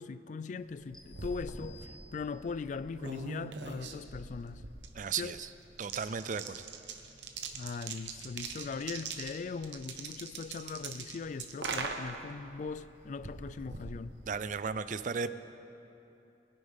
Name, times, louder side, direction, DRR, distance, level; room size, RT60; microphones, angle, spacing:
voice 1, 0.0-4.7 5.2-5.3 7.5-14.2, left 4 dB, 45° left, 0.3 m, -40 dB
sound 1, 0.7-14.7, right 4 dB, 85° right, 1.0 m, -43 dB
sound 2, 0.9-2.7, left 2 dB, 5° left, 0.9 m, -57 dB
voice 2, 4.9-5.5 5.8-6.7 14.3-15.3, right 5 dB, 45° right, 0.4 m, -35 dB
21.0 x 10.5 x 3.6 m
head